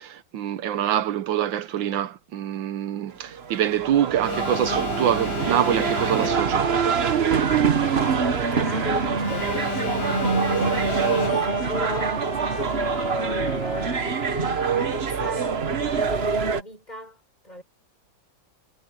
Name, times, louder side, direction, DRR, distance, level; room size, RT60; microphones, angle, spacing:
voice 1, 0.0-6.7, right 10 dB, 75° right, 1.5 m, -25 dB
sound 1, 3.1-16.6, right 6 dB, 40° right, 1.2 m, -24 dB
Alarm, 4.2-6.8 9.2-11.8, left 11 dB, 85° left, 1.7 m, -33 dB
Trumpet, 7.6-15.0, left 5 dB, 60° left, 2.5 m, -41 dB
voice 2, 7.8-17.6, equal, 20° left, 6.1 m, -35 dB
omnidirectional pair, 2.1 m